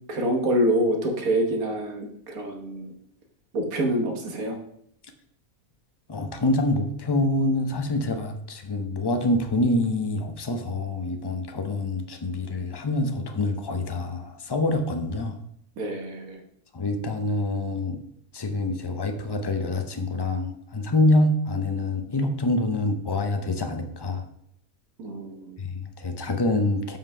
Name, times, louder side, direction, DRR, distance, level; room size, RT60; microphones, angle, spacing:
voice 1, 0.1-2.9 3.5-4.6 15.8-16.4 25.0-25.6, right 1 dB, 85° right, 3 dB, 1.7 m, -26 dB
voice 2, 6.1-15.4 16.7-18.0 18.3-24.3 25.6-27.0, left 2 dB, 30° left, 6 dB, 0.4 m, -26 dB
5.6 x 5.5 x 5.5 m, 0.71 s
omnidirectional pair, 1.5 m